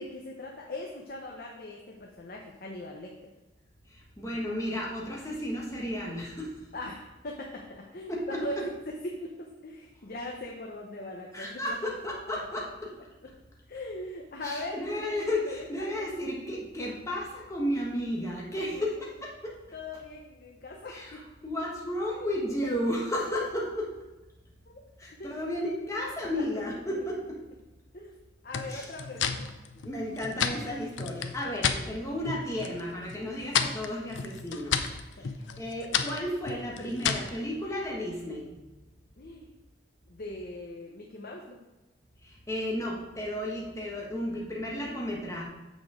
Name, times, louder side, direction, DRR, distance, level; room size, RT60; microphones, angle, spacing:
voice 1, 0.0-3.1 6.7-11.6 12.3-12.5 13.7-15.2 15.5-15.9 18.7-18.8 19.7-21.2 22.6-22.7 24.7-24.8 25.2-25.4 26.4-26.6 27.9-28.2 28.4-29.5 35.2-35.6 39.2-39.5 40.1-41.6, left 1 dB, 50° left, 0 dB, 0.9 m, -40 dB
voice 2, 3.9-6.5 8.1-8.4 11.3-12.9 14.4-19.5 20.9-23.9 25.0-27.4 28.7-28.9 29.8-34.9 35.2-35.3 35.6-38.5 42.2-45.4, left 1 dB, 15° left, -3 dB, 1.3 m, -33 dB
sound 1, 28.5-31.8 32.2-32.8 33.1-37.4, left 7 dB, 80° left, 0.6 m, -31 dB
7.0 x 6.3 x 4.9 m, 1.1 s
head